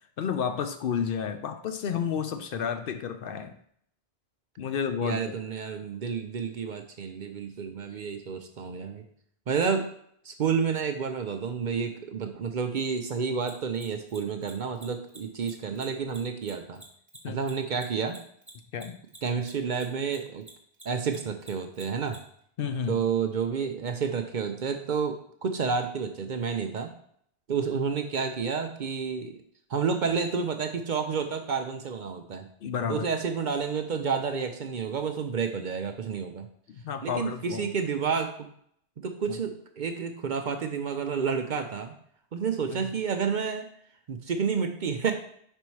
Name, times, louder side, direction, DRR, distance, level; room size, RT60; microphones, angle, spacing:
voice 1, 0.2-3.6 4.6-5.4 15.7-15.8 17.2-17.4 18.7-19.0 22.6-23.0 32.6-33.1 36.7-37.7 39.3-39.4 42.7-42.9, left 7 dB, 65° left, 8 dB, 0.7 m, -31 dB
voice 2, 5.0-9.0 9.5-9.9 10.2-16.8 17.3-18.2 19.2-20.5 20.8-22.2 22.9-26.9 27.5-29.4 29.7-32.5 32.9-36.5 37.0-38.5 39.0-41.9 42.3-43.7 44.1-45.1, right 6 dB, 55° right, 6 dB, 0.6 m, -30 dB
Mechanisms, 13.4-20.2 20.4-22.2, right 2 dB, 10° right, 1.1 m, -48 dB
5.3 x 4.3 x 4.6 m, 0.66 s
omnidirectional pair, 1.1 m